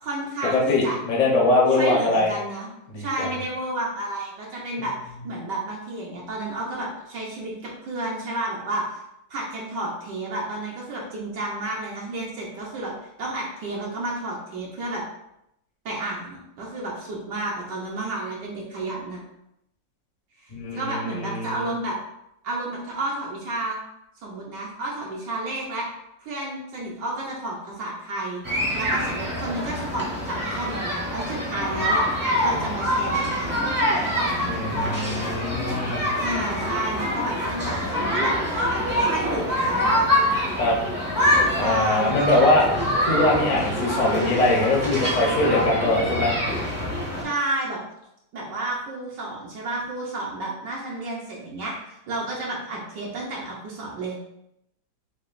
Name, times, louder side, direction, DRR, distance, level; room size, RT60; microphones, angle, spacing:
voice 1, 0.0-0.9 1.7-2.7 3.0-9.0 9.3-12.9 13.2-15.0 15.8-19.2 20.4-21.9 22.4-23.8 24.2-25.9 26.2-32.0 32.4-33.7 34.0-34.5 36.0-38.3 39.0-39.9 41.5-42.5 47.2-47.8 48.3-54.2, right 2 dB, 65° right, -4 dB, 1.4 m, -31 dB
voice 2, 0.5-2.3 2.9-3.3 20.5-21.6 34.5-36.0 40.6-40.8 41.6-42.6 43.0-46.3, left 2 dB, 35° left, -4 dB, 0.7 m, -22 dB
sound 1, 28.4-47.2, equal, 15° right, 0.6 m, -25 dB
6.2 x 2.3 x 2.5 m, 0.81 s
omnidirectional pair, 2.1 m